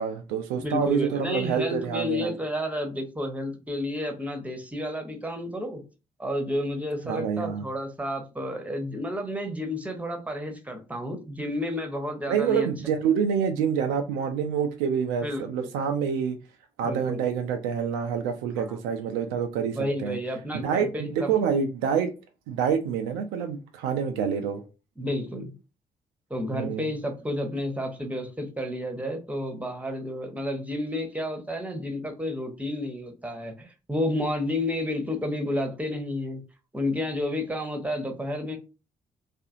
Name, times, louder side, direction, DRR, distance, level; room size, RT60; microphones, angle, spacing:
voice 1, 0.0-2.3 7.0-7.6 12.3-16.4 16.8-20.2 20.6-22.1 22.5-24.6 26.5-26.9, right 7 dB, 70° right, 6 dB, 0.4 m, -27 dB
voice 2, 0.6-5.8 6.2-12.7 15.2-15.7 16.8-17.2 18.6-18.8 19.7-21.3 25.0-25.5 26.3-36.4 36.7-38.6, left 1 dB, 5° right, 4 dB, 0.9 m, -31 dB
2.6 x 2.5 x 2.5 m, 0.30 s
figure-of-eight pair, 40°, 19 cm